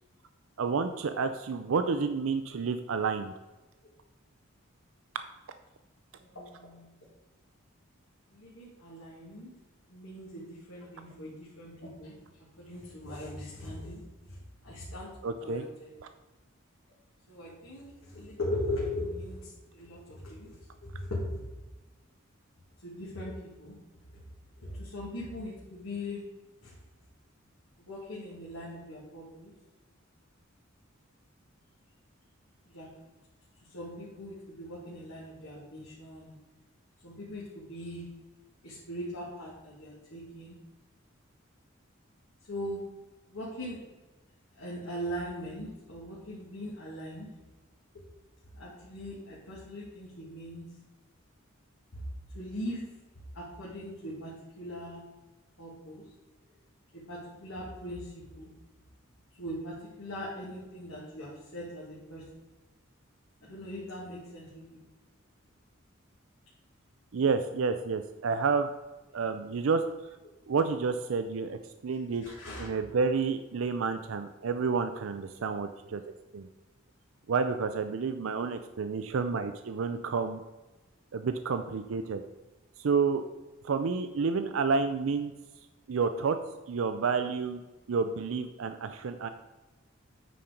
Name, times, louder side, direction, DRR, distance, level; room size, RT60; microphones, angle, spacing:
voice 1, 0.6-3.3 15.2-15.6 67.1-68.7 69.1-69.8 70.5-72.2 72.6-76.0 76.3-76.5 77.3-80.4 81.1-82.2 82.8-83.2 83.6-85.3 85.9-86.4 86.7-87.6 87.9-89.3, right 5 dB, 75° right, 9 dB, 0.5 m, -29 dB
voice 2, 6.1-6.9 8.3-9.5 9.9-12.2 12.6-14.0 14.3-14.4 14.6-15.1 15.4-15.9 17.3-21.4 22.8-23.8 24.6-26.2 26.6-26.7 27.8-29.5 32.7-32.9 33.7-36.3 37.0-38.0 38.6-40.6 42.5-42.8 43.3-43.8 44.6-47.3 48.5-50.7 51.9-52.0 52.3-52.8 53.3-55.0 55.6-56.0 56.9-58.5 59.4-62.2 63.4-64.8 72.2-72.7, left 1 dB, 90° left, -7 dB, 2.2 m, -40 dB
9.2 x 4.4 x 5.0 m, 1.1 s
head